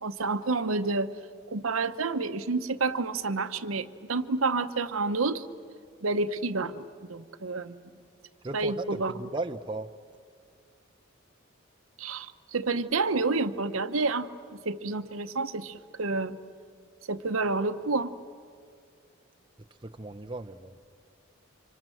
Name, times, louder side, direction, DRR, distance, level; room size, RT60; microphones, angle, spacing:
voice 1, 0.0-1.1 1.5-5.5 6.0-6.8 7.1-7.8 8.5-9.1 12.0-14.3 14.6-16.4 17.1-18.1, right 3 dB, 80° right, 10 dB, 0.9 m, -29 dB
voice 2, 8.4-9.9 19.8-20.8, right 2 dB, 25° right, 5 dB, 0.6 m, -36 dB
28.5 x 25.0 x 7.8 m, 2.1 s
head